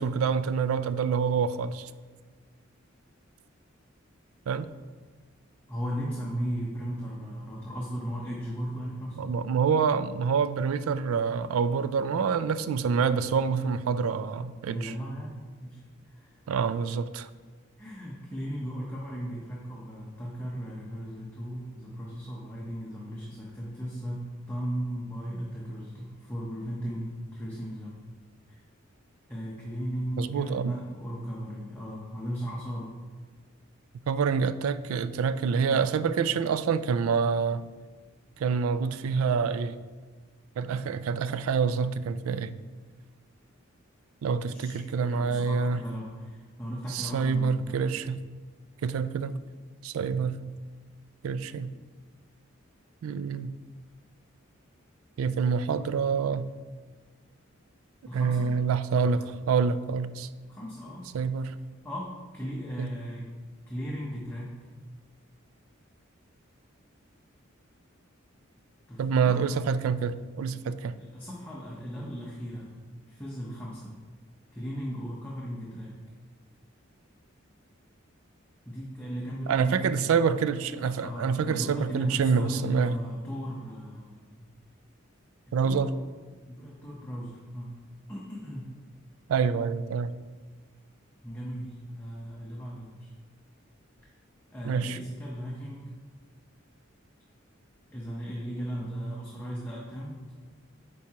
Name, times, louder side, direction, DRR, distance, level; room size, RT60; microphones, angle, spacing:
voice 1, 0.0-1.9 4.5-4.7 9.2-14.9 16.5-17.3 30.2-30.8 34.1-37.6 38.4-39.8 40.6-42.5 44.2-45.8 46.9-48.2 48.8-49.4 49.8-50.4 51.2-51.7 53.0-53.5 55.2-56.5 58.1-60.3 61.1-61.5 62.8-62.9 69.0-71.0 79.5-83.0 85.5-85.9 89.3-90.2 94.6-95.0, right 6 dB, 85° right, 14 dB, 0.3 m, -27 dB
voice 2, 5.7-9.4 14.6-16.3 17.8-24.2 24.5-28.0 28.5-28.6 29.3-32.9 44.5-48.0 58.1-58.5 59.2-59.3 60.5-61.1 61.8-63.3 63.7-64.5 68.9-69.4 70.9-72.7 73.1-73.9 74.5-76.0 78.7-80.3 81.0-84.5 85.6-85.9 86.5-87.7 88.1-88.7 91.2-93.1 94.5-95.9 97.9-100.2, equal, 10° left, -5 dB, 0.7 m, -37 dB
8.9 x 4.7 x 2.9 m, 1.4 s
head